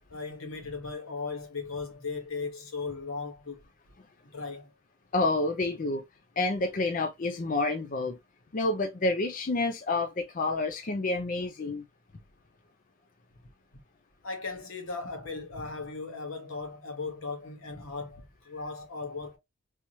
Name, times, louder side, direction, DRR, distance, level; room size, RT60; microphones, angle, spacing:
voice 1, 0.1-3.6 4.3-4.7 14.2-19.4, left 4 dB, 85° left, 1.3 m, -37 dB
voice 2, 5.1-6.0 6.4-8.2 8.5-11.8, left 2 dB, 40° left, 0.5 m, -29 dB
3.5 x 3.0 x 2.8 m
head